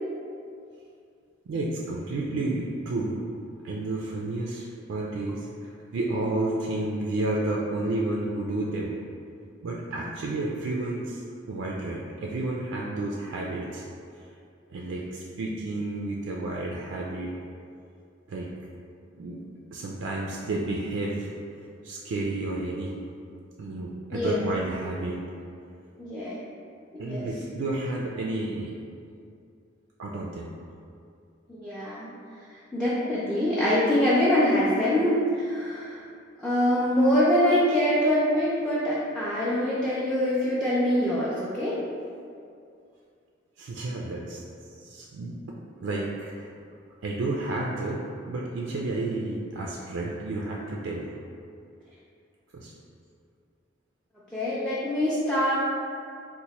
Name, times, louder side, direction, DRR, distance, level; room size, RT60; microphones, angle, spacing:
voice 1, 1.5-3.2 3.6-8.9 9.6-13.8 14.7-17.3 18.3-18.5 19.2-19.4 19.7-21.3 21.8-22.9 23.6-25.2 27.0-28.7 30.0-30.5 43.6-44.4 44.8-45.4 45.8-46.6 47.0-48.0 48.3-51.1 52.5-52.7, right 2 dB, 75° right, -3 dB, 0.3 m, -31 dB
voice 2, 24.1-24.4 26.0-26.4 27.0-27.3 31.5-32.1 32.7-36.0 36.4-41.8 54.3-55.5, left 1 dB, 5° left, -9 dB, 0.4 m, -24 dB
2.9 x 2.1 x 4.0 m, 2.4 s
head